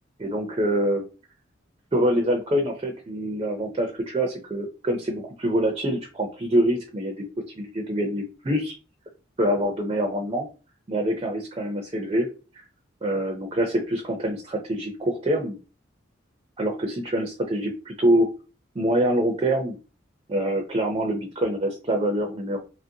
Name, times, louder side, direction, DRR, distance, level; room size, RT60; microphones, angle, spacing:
voice 1, 0.2-1.1 1.9-7.1 7.6-8.8 9.4-10.5 10.9-12.3 12.5-12.7 13.0-15.6 16.6-18.3 18.8-19.8 20.3-22.6, right 1 dB, 25° right, 3 dB, 0.4 m, -25 dB
2.9 x 2.5 x 2.7 m, 0.33 s
head